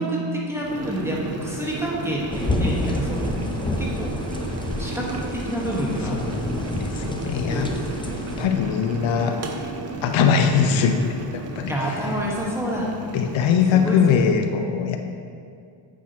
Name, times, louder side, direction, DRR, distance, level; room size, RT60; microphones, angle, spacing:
voice 1, 0.0-3.4 3.8-4.1 4.8-6.1 7.4-8.3 10.2-10.6 11.7-12.9 13.7-14.0 14.2-14.4, equal, 5° right, -5 dB, 1.4 m, -28 dB
Boiling, 0.6-14.1, right 3 dB, 30° right, 0.7 m, -34 dB
sound 1, 2.3-8.5, left 2 dB, 10° left, 0.6 m, -29 dB
voice 2, 6.0-7.7 8.4-9.4 10.0-12.0 13.1-15.0, left 7 dB, 70° left, 6 dB, 0.7 m, -22 dB
8.4 x 5.9 x 3.0 m, 2.3 s
cardioid pair, 75°, 48 cm